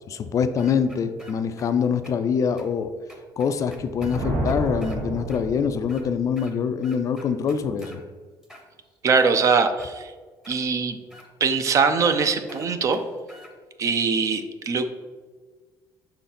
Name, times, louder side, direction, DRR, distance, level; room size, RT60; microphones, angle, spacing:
voice 1, 0.1-2.9 3.4-8.0, left 6 dB, 40° left, 10 dB, 0.3 m, -24 dB
sound 1, 0.6-1.7 2.0-2.1 2.6-2.7 3.1-5.0 5.3-5.4 5.8-6.6 6.8-8.0 8.4-9.3 9.8-9.9 10.4-10.6 11.1-11.3 11.6-11.7 12.0-12.2 12.5-13.5, left 1 dB, 5° right, 0.9 m, -47 dB
Thunder, 3.7-6.2, right 1 dB, 85° right, 1.7 m, -30 dB
voice 2, 9.0-10.1 10.5-11.0 11.4-13.0 13.8-14.9, right 5 dB, 40° right, 9 dB, 0.5 m, -22 dB
5.9 x 3.8 x 4.1 m, 1.4 s
cardioid pair, 130°, 8 cm